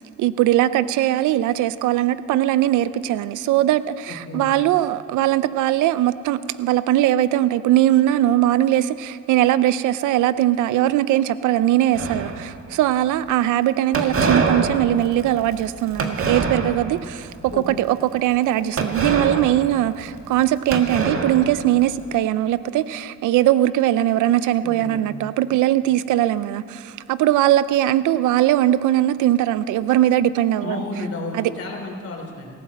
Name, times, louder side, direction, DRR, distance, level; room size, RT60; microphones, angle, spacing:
voice 1, 0.0-17.3 17.7-30.8 31.3-31.5, right 13 dB, 85° right, 16 dB, 0.6 m, -20 dB
voice 2, 4.1-4.4 17.5-17.6 24.6-25.0 30.6-32.5, left 2 dB, 50° left, 0 dB, 3.6 m, -32 dB
sound 1, 11.9-12.7 13.9-17.0 17.4-17.8 18.8-20.4 20.7-22.0, right 4 dB, 45° right, 1.6 m, -25 dB
18.0 x 15.0 x 4.2 m, 2.4 s
cardioid pair, 90°, 30 cm